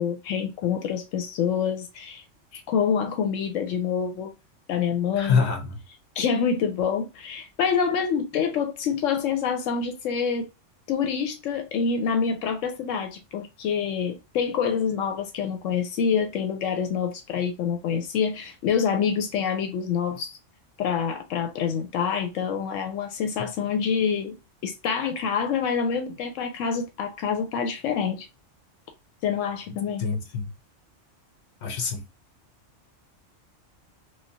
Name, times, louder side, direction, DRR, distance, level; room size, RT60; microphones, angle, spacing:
voice 1, 0.0-2.2 2.5-4.3 4.7-5.5 6.2-10.5 10.9-20.4 20.8-24.4 24.6-28.3 29.2-30.0, left 6 dB, 85° left, 1.0 m, -26 dB
voice 2, 5.2-5.8 23.4-23.5 29.7-30.5 31.6-32.1, left 5 dB, 60° left, 1.0 m, -26 dB
3.1 x 2.2 x 2.7 m
omnidirectional pair, 1.3 m